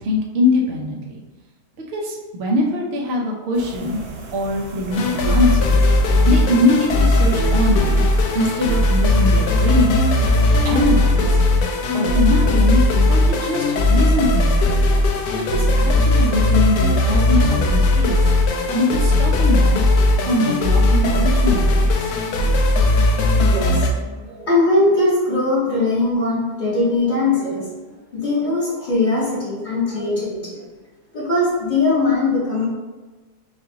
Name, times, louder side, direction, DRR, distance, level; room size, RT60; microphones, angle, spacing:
voice 1, 0.0-1.2 1.9-4.0 4.3-5.8 6.3-8.1 8.3-10.0 10.6-11.4 11.9-12.8 13.1-14.7 15.3-18.3 18.7-19.8 20.3-22.1, left 1 dB, 55° right, -1 dB, 0.7 m, -22 dB
sound 1, 3.5-10.8, right 3 dB, 80° right, 1.2 m, -36 dB
sound 2, 4.9-23.9, left 2 dB, 70° left, 0.9 m, -17 dB
voice 2, 23.3-27.7 28.1-30.6 31.1-32.7, left 2 dB, 30° left, -6 dB, 1.3 m, -20 dB
5.3 x 2.5 x 2.8 m, 1.2 s
omnidirectional pair, 1.8 m